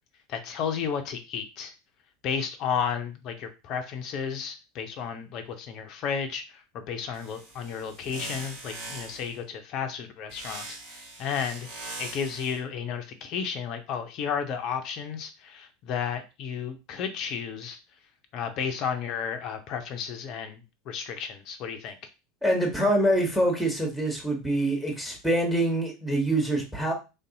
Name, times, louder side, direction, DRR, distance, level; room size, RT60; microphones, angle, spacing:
voice 1, 0.3-1.7 2.2-6.6 6.9-10.6 11.2-11.7 12.0-17.8 18.3-20.6 20.9-21.9, left 7 dB, 45° left, 6 dB, 0.5 m, -32 dB
sound 1, 7.1-9.4 10.3-12.6, right 2 dB, 60° right, 1.4 m, -41 dB
voice 2, 22.4-26.9, right 1 dB, ahead, 1 dB, 1.0 m, -25 dB
3.4 x 2.6 x 2.6 m, 0.28 s
figure-of-eight pair, 75°, 0 cm